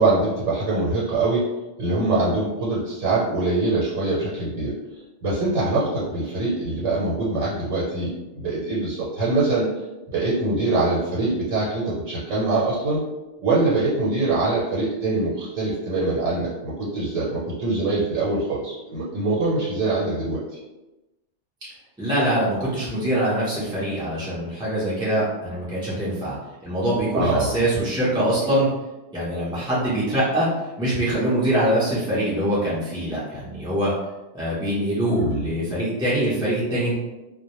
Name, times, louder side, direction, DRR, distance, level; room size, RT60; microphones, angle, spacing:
voice 1, 0.0-1.5 1.8-4.7 5.2-9.7 10.1-13.0 13.4-20.4 27.1-27.6 35.1-35.5, right 2 dB, 85° right, -7 dB, 1.0 m, -23 dB
voice 2, 22.0-26.4 26.6-28.7 29.1-30.5 30.8-33.9 34.3-36.9, right 1 dB, 5° right, -9 dB, 0.3 m, -23 dB
2.1 x 2.1 x 2.9 m, 1.0 s
omnidirectional pair, 1.3 m